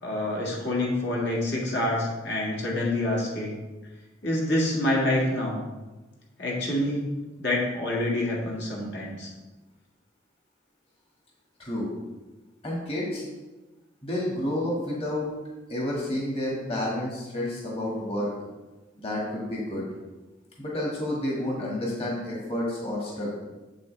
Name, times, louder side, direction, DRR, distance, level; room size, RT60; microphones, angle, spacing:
voice 1, 0.0-3.6 4.2-5.6 6.4-7.1 7.4-9.3, left 1 dB, 65° left, -3 dB, 1.9 m, -27 dB
voice 2, 11.6-11.9 12.6-13.3 14.0-15.3 15.7-18.3 19.0-19.9 20.6-23.3, left 1 dB, 30° left, -4 dB, 1.6 m, -30 dB
7.5 x 7.5 x 3.2 m, 1.2 s
head